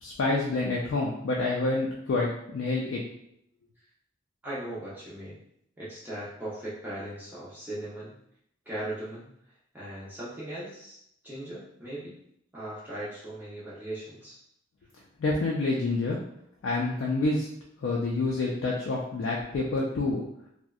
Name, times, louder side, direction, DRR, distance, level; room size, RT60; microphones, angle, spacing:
voice 1, 0.0-3.0 15.2-16.2 16.6-17.5 17.8-20.2, left 2 dB, 75° left, -3 dB, 0.4 m, -28 dB
voice 2, 4.4-5.4 5.8-8.1 8.7-9.3 9.7-11.0 11.2-12.2 12.5-14.4, right 1 dB, 10° right, -9 dB, 0.5 m, -38 dB
2.6 x 2.1 x 2.3 m, 0.74 s
head